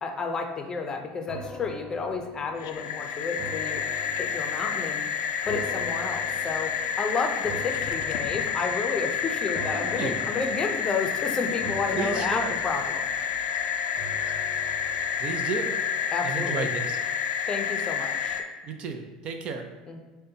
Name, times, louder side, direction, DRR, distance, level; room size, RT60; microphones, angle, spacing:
voice 1, 0.0-3.8 4.2-5.1 5.4-13.1 16.1-16.7 17.5-18.4 19.9-20.0, left 4 dB, 30° left, 4 dB, 0.5 m, -31 dB
sound 1, 1.3-16.6 17.0-17.1, left 1 dB, 5° right, 0.9 m, -43 dB
sound 2, 2.6-18.4, left 7 dB, 85° left, 0.4 m, -29 dB
voice 2, 9.7-10.2 11.9-12.5 15.2-15.7 16.2-17.0 18.6-19.6, right 5 dB, 45° right, 6 dB, 0.5 m, -32 dB
6.4 x 2.2 x 2.8 m, 1.2 s
supercardioid pair, 105°, 2 cm